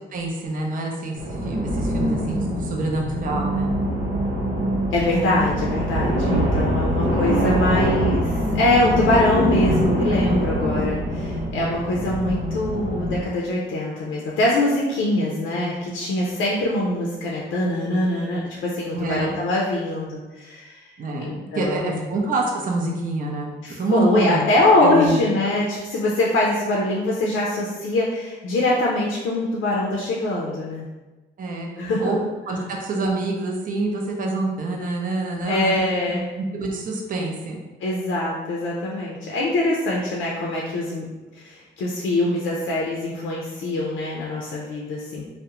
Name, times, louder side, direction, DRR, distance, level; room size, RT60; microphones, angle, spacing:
voice 1, 0.1-3.7 5.3-5.4 18.9-19.4 21.0-23.5 23.8-24.4 24.8-25.5 31.4-31.7 32.0-32.2 32.5-35.9 36.5-37.6, right 2 dB, 45° right, 0 dB, 0.5 m, -26 dB
sound 1, 1.2-13.1, equal, 90° right, 0.8 m, -24 dB
voice 2, 4.9-20.9 21.2-22.1 23.6-30.9 31.8-32.1 35.5-36.3 37.8-41.1 41.3-45.3, left 1 dB, 75° left, -3 dB, 0.5 m, -23 dB
2.3 x 2.1 x 2.9 m, 1.2 s
cardioid pair, 90°, 20 cm